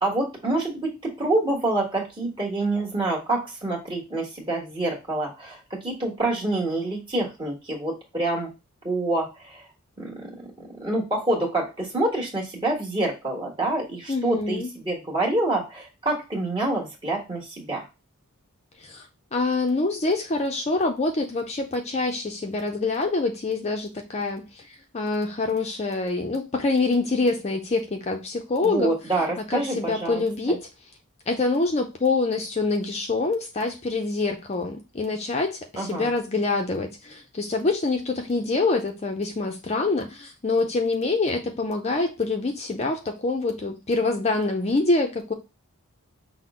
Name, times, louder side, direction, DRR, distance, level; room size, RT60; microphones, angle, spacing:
voice 1, 0.0-8.5 8.8-9.6 10.0-10.3 10.6-17.9 28.6-30.2 30.5-30.6 35.7-36.1, right 2 dB, 20° right, -2 dB, 1.4 m, -27 dB
voice 2, 14.1-14.7 18.8-19.1 19.3-28.9 29.2-30.6 31.3-45.3, left 3 dB, 30° left, 3 dB, 0.5 m, -25 dB
5.9 x 2.1 x 3.5 m, 0.27 s
head